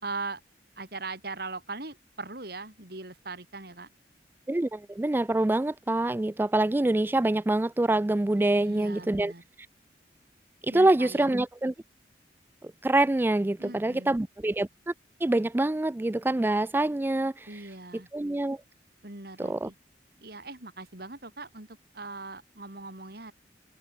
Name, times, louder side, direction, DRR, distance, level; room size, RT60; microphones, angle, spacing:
voice 1, 0.0-0.4 0.8-3.9 8.6-9.4 10.7-11.4 13.6-14.2 17.5-18.1 19.0-19.8 20.2-23.3, right 3 dB, 60° right, 4.2 m, -40 dB
voice 2, 4.5-9.3 10.6-11.7 12.8-14.9 15.2-17.6 18.1-18.6 19.4-19.7, right 2 dB, 10° right, 0.3 m, -25 dB
head